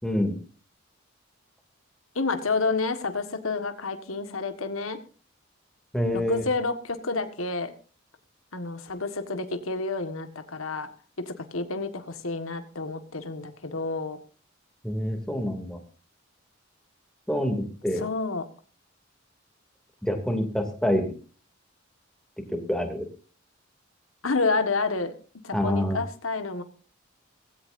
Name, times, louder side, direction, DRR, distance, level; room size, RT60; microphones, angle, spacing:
voice 1, 0.0-0.4 5.9-6.4 14.8-15.8 17.3-18.1 20.0-21.1 22.5-23.1 25.5-26.0, equal, 5° left, 3 dB, 2.7 m, -27 dB
voice 2, 2.1-5.0 6.1-7.7 8.5-10.9 11.2-14.2 18.0-18.4 24.2-25.1 25.4-26.6, left 3 dB, 85° left, 8 dB, 1.7 m, -29 dB
18.0 x 16.5 x 2.7 m, 0.38 s
head